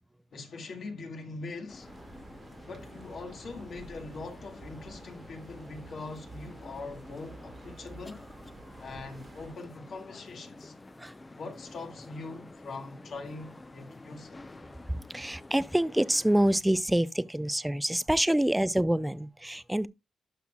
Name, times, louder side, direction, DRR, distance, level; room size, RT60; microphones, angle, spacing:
voice 1, 0.3-1.9 2.7-8.2 8.8-10.7 11.4-14.4, left 3 dB, 65° left, 1.9 m, -42 dB
sound 1, 1.7-16.6, left 2 dB, 25° left, 0.7 m, -50 dB
sound 2, 1.8-9.5, right 3 dB, 55° right, 1.6 m, -50 dB
voice 2, 14.9-19.9, right 1 dB, 5° right, 0.4 m, -26 dB
12.0 x 5.5 x 2.3 m
cardioid pair, 80°, 0 cm